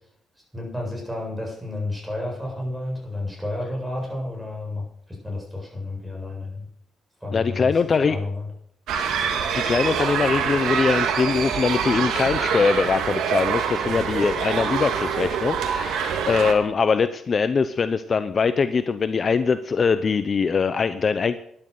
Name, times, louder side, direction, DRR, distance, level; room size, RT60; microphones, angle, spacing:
voice 1, 0.5-6.6 7.2-8.4, left 2 dB, 5° right, -1 dB, 7.7 m, -31 dB
voice 2, 7.3-8.2 9.5-21.4, left 5 dB, 40° left, 12 dB, 0.7 m, -22 dB
sound 1, 8.9-16.5, right 7 dB, 80° right, 2.4 m, -25 dB
13.0 x 11.0 x 6.7 m, 0.69 s
cardioid pair, 90°, 0 cm